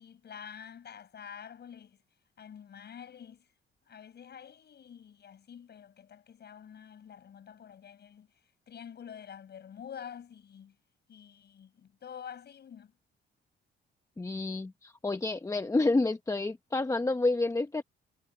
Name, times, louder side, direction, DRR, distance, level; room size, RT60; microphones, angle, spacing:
voice 1, 0.0-2.0 2.4-3.5 3.9-8.3 8.7-10.8 11.1-12.9, left 8 dB, 55° left, 7.1 m, -48 dB
voice 2, 14.2-17.8, left 2 dB, 15° left, 1.0 m, -29 dB
cardioid pair, 90°, 20 cm